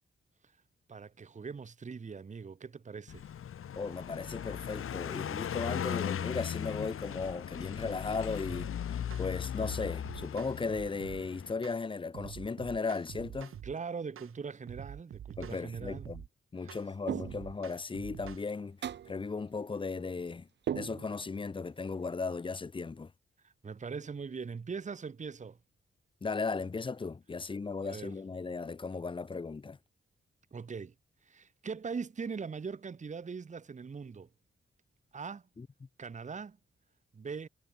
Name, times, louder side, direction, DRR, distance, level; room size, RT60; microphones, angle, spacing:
voice 1, 0.9-3.3 13.6-16.1 16.6-16.7 23.4-25.6 27.8-28.2 30.5-30.9 31.2-34.3 35.1-35.4 36.0-36.6 37.1-37.5, right 5 dB, 35° right, 1.2 m, -41 dB
Car passing by, 3.1-11.5, left 9 dB, 85° left, 2.9 m, -38 dB
voice 2, 3.8-13.5 15.4-16.2 16.5-18.8 19.1-20.5 20.7-23.1 26.2-29.8 35.6-35.7, left 4 dB, 25° left, 0.6 m, -36 dB
sound 1, 8.5-8.7 9.1-9.3 9.6-11.2 11.6-11.8 12.1-13.7 14.2-14.3 14.7-16.3 16.7-16.9 17.2-18.4, right 9 dB, 80° right, 1.3 m, -46 dB
sound 2, 17.1-17.6 18.8-19.2 20.7-21.4, right 9 dB, 55° right, 0.6 m, -37 dB
wide cardioid pair, 125°, 21 cm